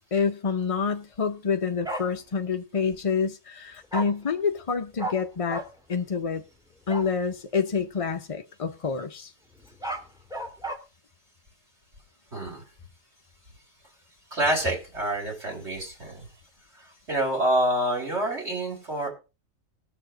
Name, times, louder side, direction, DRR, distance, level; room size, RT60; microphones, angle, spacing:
voice 1, 0.0-5.6 5.9-6.4 6.9-9.3, left 5 dB, 40° left, 0.5 m, -27 dB
Bark, 1.8-2.0 3.9-4.1 5.0-5.2 5.5-5.7 6.9-7.1 9.6-10.8, right 1 dB, 5° right, 2.0 m, -32 dB
voice 2, 12.3-12.6 14.3-16.3 16.8-19.1, right 1 dB, 55° right, 4.1 m, -27 dB
20.0 x 7.0 x 3.8 m
omnidirectional pair, 1.4 m